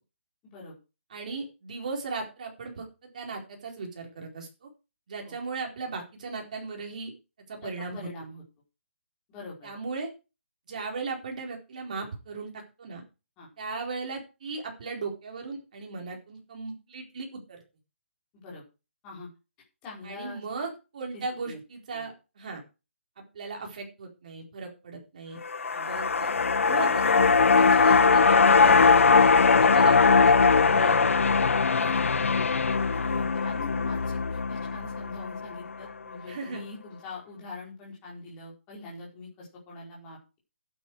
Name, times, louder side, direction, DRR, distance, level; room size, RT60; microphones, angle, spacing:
voice 1, 0.4-0.8 5.2-5.3 7.6-8.4 9.3-9.7 13.4-13.5 18.3-18.6 19.0-19.3 19.8-20.4 21.1-21.6 21.9-22.0 25.7-25.9 31.7-32.0 32.9-40.4, left 3 dB, 10° left, -4 dB, 4.7 m, -43 dB
voice 2, 1.1-4.7 5.1-7.1 7.5-8.1 9.6-10.1 10.7-12.5 12.8-13.0 13.6-17.6 20.0-22.6 23.2-25.4 25.8-26.4 26.6-27.1 27.6-31.0 36.2-36.6, right 4 dB, 35° right, 1 dB, 4.3 m, -37 dB
sound 1, 25.4-35.8 36.1-36.2, left 5 dB, 85° left, 0.7 m, -21 dB
12.0 x 9.5 x 4.8 m, 0.30 s
hypercardioid pair, 175°, 7 cm